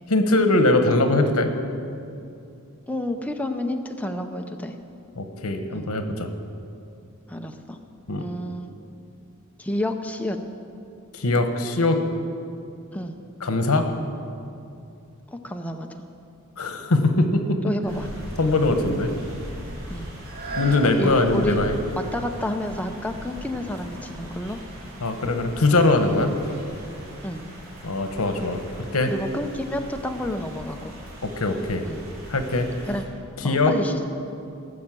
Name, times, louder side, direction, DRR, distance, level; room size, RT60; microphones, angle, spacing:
voice 1, 0.1-1.5 5.2-6.3 8.1-8.2 11.1-12.0 13.4-13.9 16.6-17.6 18.4-19.1 20.6-21.8 25.0-26.3 27.8-28.6 28.9-29.1 31.2-31.8 32.3-32.7 33.4-33.7, left 2 dB, 85° left, 7 dB, 1.1 m, -21 dB
voice 2, 0.8-1.1 2.9-4.7 5.7-5.9 7.3-7.8 8.2-8.8 9.6-10.4 12.9-13.2 15.3-16.0 17.6-18.1 19.9-20.1 20.8-21.6 22.1-24.6 27.2-27.5 29.1-31.0 31.8-32.0 32.8-33.0 33.4-34.0, left 1 dB, 5° left, 4 dB, 0.6 m, -30 dB
sound 1, 17.9-33.0, equal, 70° right, 4.0 m, -40 dB
sound 2, 20.1-25.8 26.4-26.5, right 2 dB, 50° right, 1.9 m, -40 dB
17.0 x 6.4 x 7.5 m, 2.6 s
head